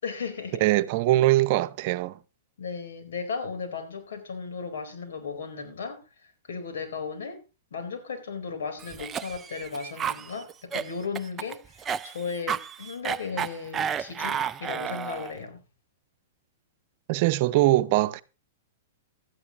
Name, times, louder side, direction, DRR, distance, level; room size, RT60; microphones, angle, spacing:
voice 1, 0.0-0.6 2.6-6.0 6.4-7.4 7.7-15.6, left 5 dB, 70° left, 4.3 m, -35 dB
voice 2, 0.6-2.2 17.1-18.2, right 16 dB, 50° right, 0.9 m, -22 dB
Cough, 8.8-15.4, right 7 dB, 20° right, 0.6 m, -32 dB
17.0 x 13.0 x 3.0 m
figure-of-eight pair, 110°, 0 cm